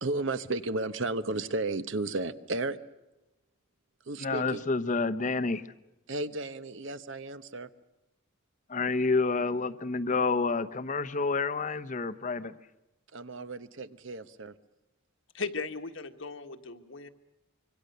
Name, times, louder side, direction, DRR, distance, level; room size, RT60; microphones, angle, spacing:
voice 1, 0.0-2.8 4.1-4.6 6.1-7.7 13.1-14.5, right 2 dB, 65° right, 12 dB, 1.0 m, -33 dB
voice 2, 4.2-5.6 8.7-12.5, left 3 dB, 40° left, 14 dB, 0.8 m, -29 dB
voice 3, 15.3-17.1, left 4 dB, 65° left, 7 dB, 1.5 m, -37 dB
26.0 x 24.0 x 6.7 m, 0.98 s
head